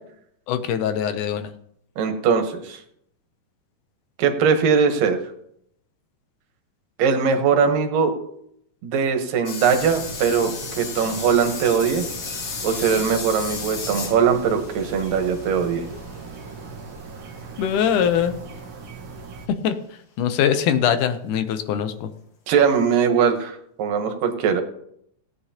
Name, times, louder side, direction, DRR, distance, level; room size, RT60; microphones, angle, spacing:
voice 1, 0.5-1.5 17.6-18.4 19.5-19.8 20.2-22.1, left 8 dB, 75° left, 9 dB, 2.2 m, -22 dB
voice 2, 2.0-2.8 4.2-5.2 7.0-8.1 8.8-12.0 12.6-15.8 22.5-24.6, right 6 dB, 85° right, 6 dB, 2.9 m, -20 dB
sound 1, 9.5-16.4 17.9-18.0, left 5 dB, 55° left, 1.3 m, -34 dB
sound 2, 9.7-19.5, right 3 dB, 60° right, 1.7 m, -39 dB
17.5 x 9.7 x 2.8 m, 0.71 s
omnidirectional pair, 3.8 m